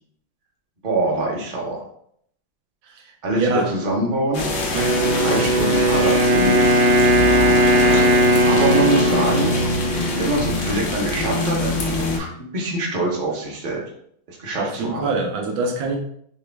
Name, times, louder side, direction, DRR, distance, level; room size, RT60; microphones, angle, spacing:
voice 1, 0.8-1.8 3.2-4.4 5.1-6.8 8.4-9.6 10.1-13.8 14.3-15.1, right 2 dB, 35° right, -2 dB, 0.8 m, -24 dB
voice 2, 2.9-3.7 14.6-16.0, right 3 dB, 90° right, 2 dB, 1.5 m, -25 dB
sound 1, 4.3-12.2, left 2 dB, 65° left, 0.8 m, -24 dB
Wind instrument woodwind instrument, 4.7-10.7, equal, 70° right, 1.2 m, -18 dB
5.3 x 3.2 x 2.2 m, 0.68 s
omnidirectional pair, 2.1 m